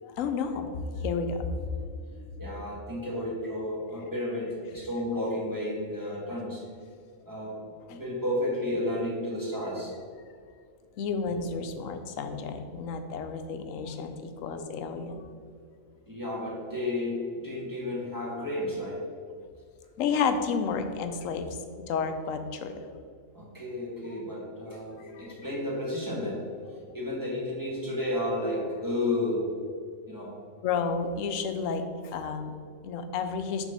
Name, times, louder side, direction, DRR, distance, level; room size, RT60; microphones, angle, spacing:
voice 1, 0.0-0.7 0.9-2.2 7.9-8.0 11.0-15.6 20.0-23.0 24.6-25.3 30.6-33.7, left 5 dB, 80° left, 8 dB, 1.0 m, -32 dB
voice 2, 2.4-6.6 7.2-9.9 16.1-19.0 23.3-26.4 26.9-29.4 30.1-30.3, left 1 dB, 15° right, -6 dB, 1.5 m, -32 dB
6.1 x 3.6 x 5.5 m, 2.2 s
omnidirectional pair, 1.4 m